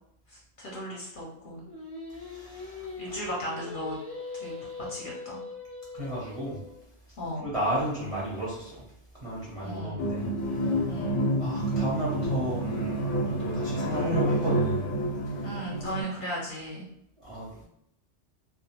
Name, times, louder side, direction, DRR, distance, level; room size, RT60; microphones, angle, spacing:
voice 1, 0.3-1.6 3.0-3.9 4.4-4.5 4.9-5.4 7.2-7.5 9.6-10.1 10.9-11.3 15.4-16.8, equal, 60° left, -4 dB, 0.6 m, -36 dB
Singing, 1.6-6.8, left 4 dB, 5° left, 0.6 m, -41 dB
voice 2, 2.1-3.3 5.9-6.6 7.4-8.8 9.2-10.9 11.4-14.9 15.3-15.5 17.2-17.6, equal, 35° right, -7 dB, 0.6 m, -34 dB
sound 1, 10.0-16.0, right 1 dB, 90° left, 0.9 m, -28 dB
2.2 x 2.1 x 2.8 m, 0.78 s
omnidirectional pair, 1.2 m